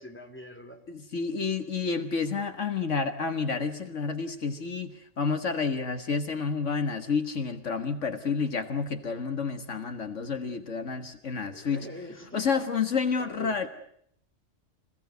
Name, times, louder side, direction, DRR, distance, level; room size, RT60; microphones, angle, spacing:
voice 1, 0.0-0.8 11.4-12.6 13.2-13.7, left 1 dB, 10° left, 4 dB, 3.2 m, -44 dB
voice 2, 0.9-11.9 12.3-13.7, left 5 dB, 70° left, 8 dB, 1.8 m, -30 dB
26.0 x 17.0 x 9.3 m, 0.70 s
omnidirectional pair, 1.3 m